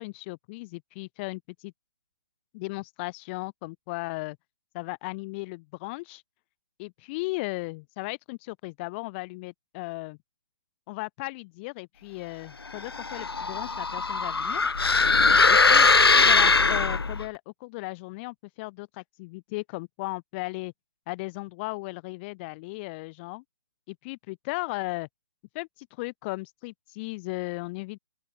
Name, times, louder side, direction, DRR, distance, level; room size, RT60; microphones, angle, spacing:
voice 1, 0.0-1.7 2.5-4.4 4.7-6.2 6.8-10.2 10.9-14.6 15.5-20.7 21.1-23.4 23.9-25.1 25.5-28.0, left 25 dB, 30° left, 7.1 m, -36 dB
sound 1, 12.8-17.3, left 4 dB, 80° left, 0.7 m, -21 dB
open air
figure-of-eight pair, 135°, 13 cm